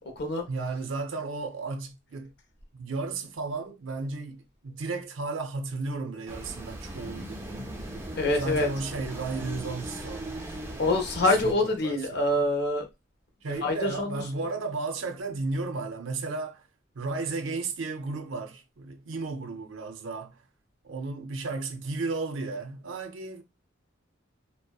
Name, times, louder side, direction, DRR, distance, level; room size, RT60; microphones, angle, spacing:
voice 1, 0.5-2.3 2.7-8.0 8.4-10.3 10.6-10.8 11.4-12.5 13.4-16.6 17.0-20.4 20.8-23.4, right 3 dB, 75° right, 0.5 m, -34 dB
sound 1, 6.3-11.5, right 1 dB, 15° right, 0.4 m, -38 dB
voice 2, 8.2-8.7 10.8-12.9 13.5-14.2, left 2 dB, 55° left, 0.6 m, -25 dB
2.7 x 2.0 x 2.2 m
head